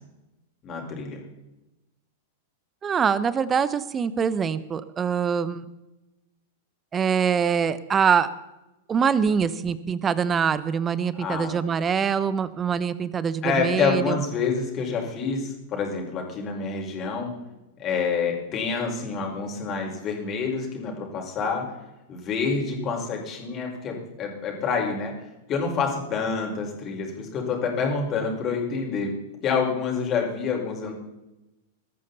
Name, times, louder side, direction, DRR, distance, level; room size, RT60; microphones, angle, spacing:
voice 1, 0.6-1.2 11.2-11.5 13.4-17.3 17.8-21.6 22.1-25.1 25.5-29.1 29.4-30.9, left 5 dB, 35° left, 1 dB, 5.3 m, -27 dB
voice 2, 2.8-5.7 6.9-8.3 8.9-14.2, right 6 dB, 20° right, 16 dB, 1.0 m, -24 dB
21.0 x 13.5 x 4.3 m, 0.97 s
figure-of-eight pair, 95°, 0 cm